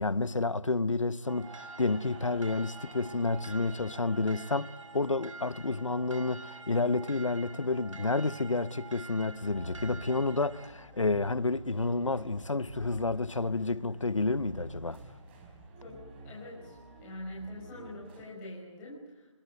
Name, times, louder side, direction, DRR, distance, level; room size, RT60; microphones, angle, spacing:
voice 1, 0.0-15.0, left 3 dB, 90° left, 1.1 m, -30 dB
sound 1, 1.2-18.2, right 3 dB, 20° right, 4.3 m, -52 dB
sound 2, 1.3-10.7, right 3 dB, 80° right, 3.0 m, -48 dB
voice 2, 16.2-19.3, left 1 dB, 15° left, 5.2 m, -44 dB
26.0 x 21.0 x 8.0 m
figure-of-eight pair, 160°, 16 cm